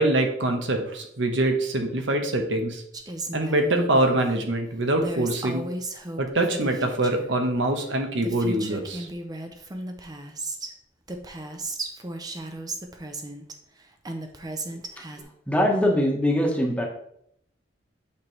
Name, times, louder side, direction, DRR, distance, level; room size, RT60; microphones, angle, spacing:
voice 1, 0.0-2.8 3.3-5.6 6.2-9.1, right 1 dB, 80° right, 4 dB, 1.0 m, -24 dB
Female speech woman speaking, 2.9-4.2 5.0-7.3 7.9-8.0 8.2-10.7 11.1-13.5 14.0-15.2, right 2 dB, 20° right, 0.6 m, -35 dB
voice 2, 15.5-16.9, left 1 dB, 5° left, 0 dB, 1.1 m, -22 dB
8.4 x 4.6 x 3.2 m, 0.72 s
head